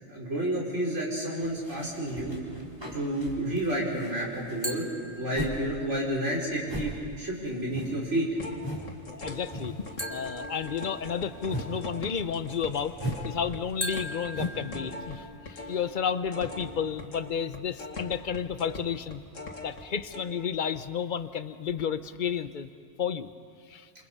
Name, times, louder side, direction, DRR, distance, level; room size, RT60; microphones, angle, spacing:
voice 1, 0.1-2.4 2.9-4.9 5.2-8.3, right 1 dB, 70° right, -3 dB, 5.3 m, -30 dB
sound 1, 1.4-5.6 5.9-8.9 9.2-9.9 10.2-14.7, equal, 20° right, 3.7 m, -38 dB
sound 2, 4.6-5.9 10.0-11.5 13.8-15.5, equal, 10° left, 2.0 m, -40 dB
sound 3, 8.4-15.8 16.1-19.8 20.1-20.2, left 2 dB, 90° left, 2.6 m, -41 dB
voice 2, 9.1-9.8 10.1-13.0 13.2-19.2 19.6-22.7 23.0-23.3 23.7-23.9, left 7 dB, 45° left, 12 dB, 0.9 m, -32 dB
28.0 x 27.5 x 5.6 m, 2.3 s
omnidirectional pair, 1.3 m